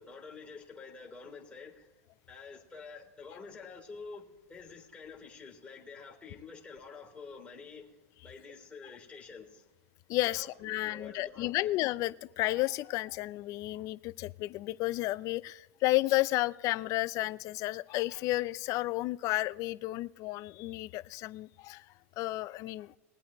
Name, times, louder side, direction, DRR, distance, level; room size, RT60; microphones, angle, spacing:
voice 1, 0.0-1.9 2.3-7.8 8.2-9.6 10.2-11.7, left 4 dB, 15° left, -2 dB, 3.3 m, -48 dB
voice 2, 10.1-21.8 22.2-22.9, left 18 dB, 40° left, 18 dB, 0.5 m, -32 dB
22.0 x 8.6 x 3.1 m, 1.1 s
hypercardioid pair, 120°, 8 cm